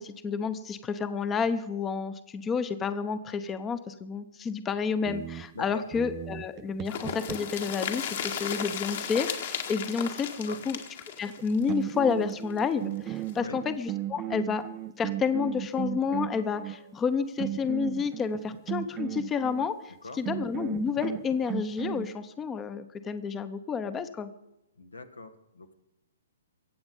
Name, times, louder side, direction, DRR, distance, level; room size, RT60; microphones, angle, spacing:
voice 1, 0.0-10.8 11.2-14.6 15.0-19.8 20.2-24.3, left 6 dB, 15° left, 12 dB, 0.8 m, -30 dB
sound 1, 5.0-7.7 11.3-11.4 11.7-16.8 17.4-19.7 20.3-22.1, right 13 dB, 25° right, 0.4 m, -36 dB
sound 2, 6.9-12.6 12.9-13.0 13.3-13.4, left 8 dB, 55° left, 2.0 m, -35 dB
voice 2, 24.8-25.7, left 3 dB, 85° left, 9 dB, 1.5 m, -42 dB
24.0 x 8.1 x 5.4 m, 0.90 s
figure-of-eight pair, 125°, 0 cm